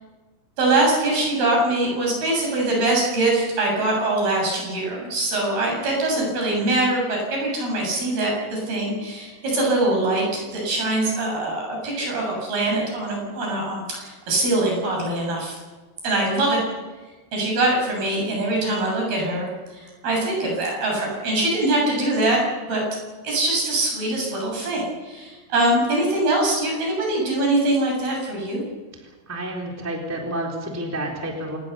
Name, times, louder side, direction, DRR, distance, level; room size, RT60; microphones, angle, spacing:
voice 1, 0.6-15.6 16.0-16.6 17.3-22.8 23.2-28.6, right 2 dB, 55° right, 0 dB, 9.4 m, -23 dB
voice 2, 29.3-31.6, right 1 dB, 5° right, 0 dB, 3.1 m, -29 dB
27.5 x 20.5 x 6.8 m, 1.3 s
omnidirectional pair, 5.2 m